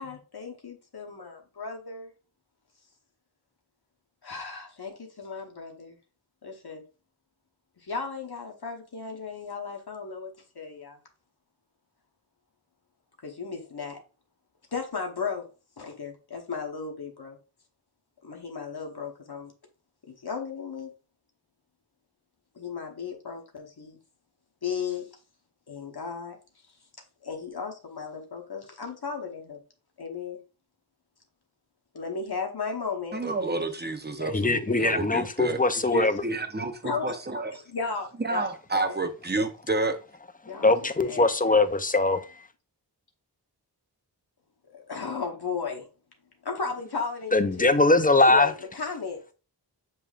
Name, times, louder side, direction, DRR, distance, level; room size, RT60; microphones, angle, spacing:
voice 1, 0.0-2.1 4.2-6.0 6.4-6.8 7.8-11.0 13.2-14.0 14.7-15.5 15.8-17.4 18.2-19.5 20.1-20.9 22.6-24.0 24.6-25.1 25.7-26.4 27.2-29.6 30.0-30.4 31.9-33.2 34.2-34.8 35.8-36.0 36.8-37.2 37.7-38.5 38.9-39.0 40.5-41.6 44.7-45.9 46.4-47.7 48.1-49.3, left 5 dB, 65° left, 1.0 m, -35 dB
voice 2, 33.1-35.6 35.9-37.6 38.2-40.0, right 3 dB, 25° right, 0.8 m, -30 dB
voice 3, 34.3-36.2 40.6-42.2 47.3-48.5, left 2 dB, 20° left, 0.4 m, -21 dB
6.8 x 3.1 x 2.4 m
wide cardioid pair, 45°, 41 cm